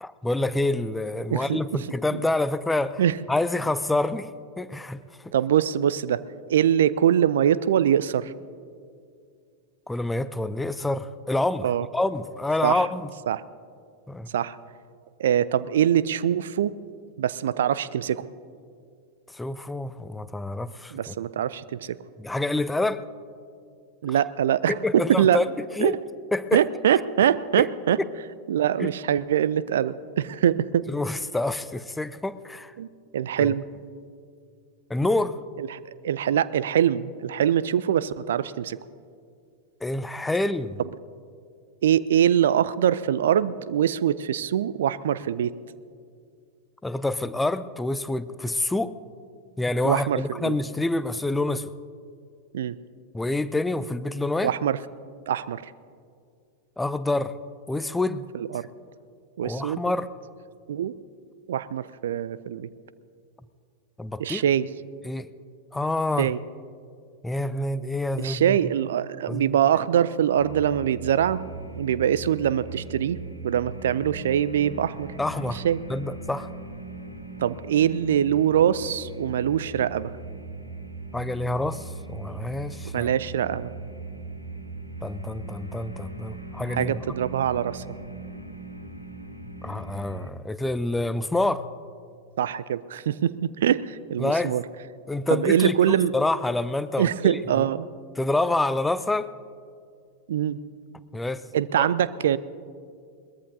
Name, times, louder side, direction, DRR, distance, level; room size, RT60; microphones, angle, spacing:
voice 1, 0.0-3.0 3.3-4.3 4.6-5.3 9.9-13.1 14.1-14.3 19.3-21.1 22.2-23.0 24.7-26.0 26.3-26.6 27.6-27.7 28.0-28.1 28.8-28.9 30.9-32.7 33.4-33.5 34.9-35.4 39.8-40.8 46.8-48.9 49.6-51.7 53.1-54.5 56.8-57.3 57.7-58.3 59.4-60.1 64.0-64.4 65.0-65.3 65.7-66.3 67.2-68.6 69.3-69.6 75.2-75.6 75.9-76.5 81.1-83.1 85.0-87.0 89.6-91.6 94.2-94.5 95.1-97.6 98.2-99.3 101.1-101.4 101.8-101.9, left 2 dB, 5° left, 15 dB, 0.5 m, -27 dB
voice 2, 1.3-1.6 2.1-2.2 3.0-3.1 5.3-6.2 6.5-8.3 11.6-11.9 12.6-12.8 13.3-13.4 14.3-14.6 15.2-16.7 17.2-18.3 20.9-22.0 24.0-25.4 25.8-25.9 26.5-28.0 28.5-30.9 32.8-32.9 33.1-33.6 35.6-38.8 41.8-45.5 49.8-50.6 52.5-52.7 54.4-54.8 55.3-55.6 58.3-58.6 59.4-59.8 60.7-60.9 61.5-62.7 64.2-64.7 66.2-66.4 68.2-71.4 71.8-73.2 73.4-75.1 75.5-75.8 77.4-80.1 82.9-83.7 86.7-87.8 92.4-93.4 93.6-94.6 95.3-96.1 97.0-97.9 100.3-100.6 101.5-102.4, right 10 dB, 60° right, 18 dB, 0.4 m, -23 dB
sound 1, 70.3-90.3, right 2 dB, 90° left, 1.7 m, -39 dB
22.0 x 20.0 x 2.7 m, 2.3 s
figure-of-eight pair, 90°, 0 cm